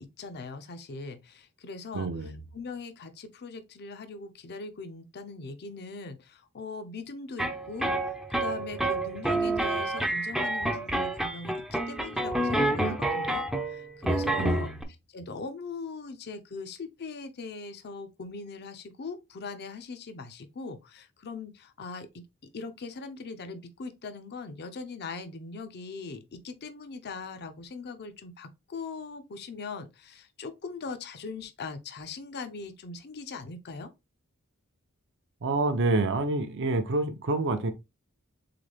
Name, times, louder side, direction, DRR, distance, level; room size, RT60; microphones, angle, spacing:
voice 1, 0.0-2.1 2.5-14.7 15.1-22.2 22.5-33.9, left 4 dB, 50° left, 0.5 m, -40 dB
voice 2, 1.9-2.4 14.4-14.8 35.4-37.7, right 2 dB, 55° right, 0.6 m, -27 dB
sound 1, 7.4-14.8, right 1 dB, ahead, 0.5 m, -28 dB
3.9 x 3.6 x 3.3 m
head